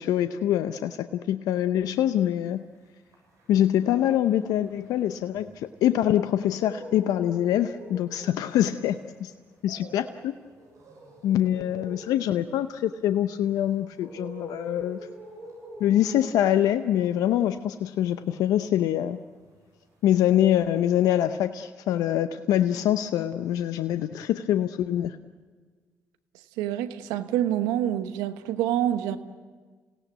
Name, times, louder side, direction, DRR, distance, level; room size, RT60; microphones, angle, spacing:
voice 1, 0.0-2.6 3.5-9.3 9.6-10.3 11.2-15.0 15.8-19.2 20.0-25.2, left 11 dB, 75° left, 11 dB, 0.7 m, -24 dB
sound 1, 2.7-5.9 6.3-19.7 20.0-21.0, right 1 dB, 65° right, 7.8 m, -47 dB
voice 2, 26.6-29.2, right 11 dB, 85° right, 10 dB, 1.0 m, -26 dB
27.5 x 17.0 x 8.0 m, 1.5 s
hypercardioid pair, 50°, 6 cm